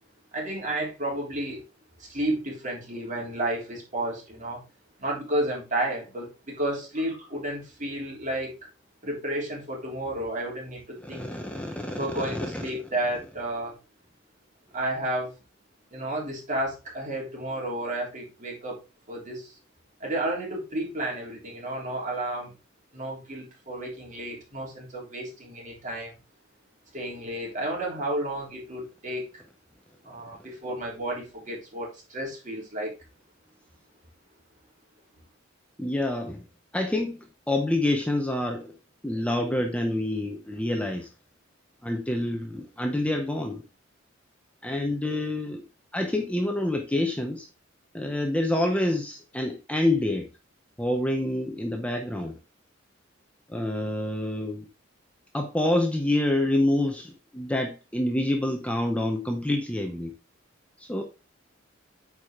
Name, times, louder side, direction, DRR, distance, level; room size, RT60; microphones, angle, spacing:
voice 1, 0.3-1.6 2.0-4.6 5.0-8.6 9.0-11.3 12.0-13.7 14.7-15.3 15.9-18.8 19.1-19.6 20.0-22.5 22.9-26.1 26.9-29.3 30.0-33.0, right 1 dB, 40° right, 3.6 m, -32 dB
voice 2, 11.0-12.6 35.8-36.5 36.7-38.7 39.0-41.1 41.8-43.6 44.6-45.6 45.9-47.5 47.9-50.3 50.8-52.4 53.5-54.7 55.3-60.1 60.8-61.0, left 1 dB, 5° left, 0.8 m, -27 dB
8.9 x 4.8 x 3.7 m
head